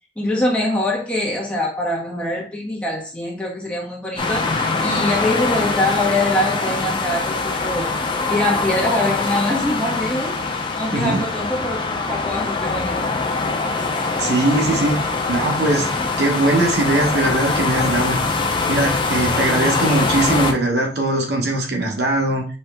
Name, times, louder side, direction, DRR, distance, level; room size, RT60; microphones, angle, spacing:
voice 1, 0.2-8.0 8.3-10.4 10.8-13.1, left 1 dB, 5° left, 1.3 m, -23 dB
sound 1, 4.2-20.5, left 3 dB, 30° left, 0.7 m, -23 dB
voice 2, 14.2-18.2 18.7-22.5, right 2 dB, 65° right, 1.1 m, -20 dB
4.3 x 3.3 x 3.4 m
head